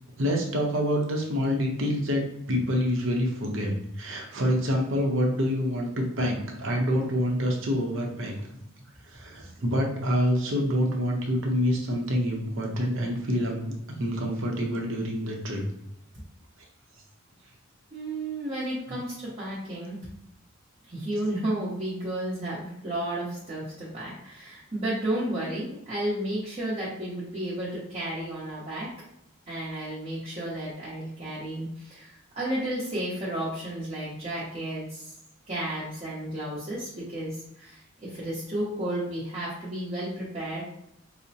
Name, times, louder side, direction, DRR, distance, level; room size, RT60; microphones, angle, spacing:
voice 1, 0.2-2.2 2.5-8.5 9.1-15.6, equal, 70° right, 0 dB, 0.7 m, -27 dB
voice 2, 17.9-20.1 20.8-28.9 29.5-35.2 35.5-40.7, right 1 dB, 35° right, -8 dB, 0.8 m, -32 dB
4.8 x 2.1 x 2.7 m, 0.79 s
head